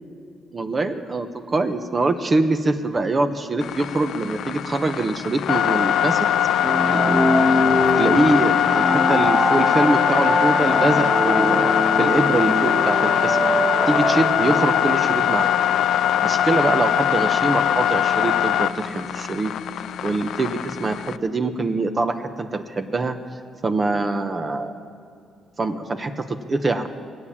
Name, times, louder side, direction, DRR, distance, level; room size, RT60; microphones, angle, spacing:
voice 1, 0.5-6.3 6.9-7.2 7.9-11.7 12.0-13.4 13.9-15.5 16.2-19.5 20.0-23.2 23.6-24.7 25.6-26.9, right 2 dB, 35° right, 7 dB, 1.0 m, -23 dB
sound 1, 3.6-21.2, left 10 dB, 75° left, 0.4 m, -21 dB
sound 2, 6.6-15.3, equal, 5° right, 1.2 m, -23 dB
21.5 x 8.4 x 7.3 m, 2.4 s
cardioid pair, 90°, 0 cm